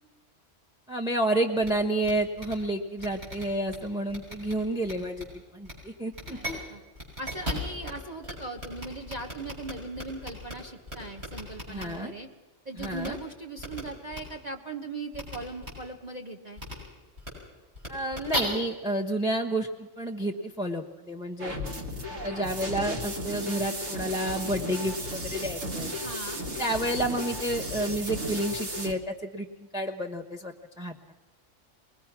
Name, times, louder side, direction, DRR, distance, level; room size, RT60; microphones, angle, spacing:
voice 1, 0.9-5.3 5.5-6.6 11.7-12.1 12.8-13.2 17.9-21.5 22.2-25.9 26.6-31.1, right 1 dB, 5° right, 6 dB, 1.0 m, -30 dB
sound 1, 1.6-1.7 2.0-2.1 2.4-2.5 3.0-3.7 4.1-4.5 4.8-5.2 5.6-5.7 6.1-6.5 6.9-7.9 8.2-8.3 8.6-10.5 10.9-11.8 12.8-13.1 13.6-13.8 14.1-14.2 15.1-15.3 15.6-15.7 16.6-16.7 17.2-17.3 17.7-18.4, equal, 55° right, 7.1 m, -35 dB
voice 2, 6.3-6.8 7.2-12.3 12.6-16.6 26.0-26.4, right 2 dB, 35° right, 4 dB, 1.3 m, -39 dB
sound 2, 21.4-28.9, equal, 80° right, 2.3 m, -34 dB
23.5 x 20.0 x 6.0 m, 1.2 s
omnidirectional pair, 1.3 m